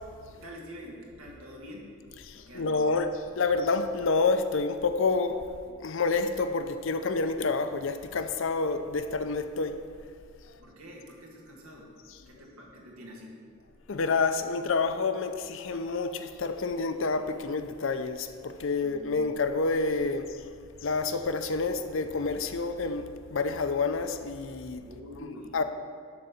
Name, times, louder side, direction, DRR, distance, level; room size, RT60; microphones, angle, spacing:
voice 1, 0.3-1.9 2.3-2.8 10.5-11.9 12.3-13.4 18.8-19.4 24.9-25.6, equal, 90° right, 1.8 m, -46 dB
voice 2, 2.3-5.5 5.8-9.8 13.9-24.8 25.2-25.6, left 4 dB, 65° left, 0.5 m, -28 dB
11.5 x 4.0 x 6.9 m
head